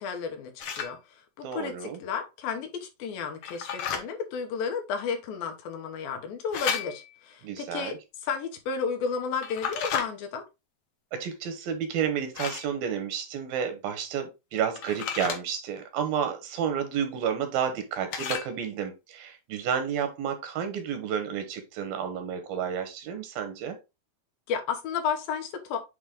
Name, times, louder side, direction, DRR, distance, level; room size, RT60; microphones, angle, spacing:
voice 1, 0.0-7.9 8.2-10.4 24.5-25.8, left 6 dB, 90° left, 2.9 m, -32 dB
sound 1, 0.6-0.9 3.4-4.0 6.5-7.2 9.4-10.1 12.4-12.7 14.8-15.4 18.1-18.5, left 7 dB, 70° left, 1.4 m, -32 dB
voice 2, 1.4-2.0 7.4-8.0 11.1-23.8, right 8 dB, 85° right, 3.0 m, -31 dB
8.0 x 3.2 x 3.7 m
omnidirectional pair, 4.1 m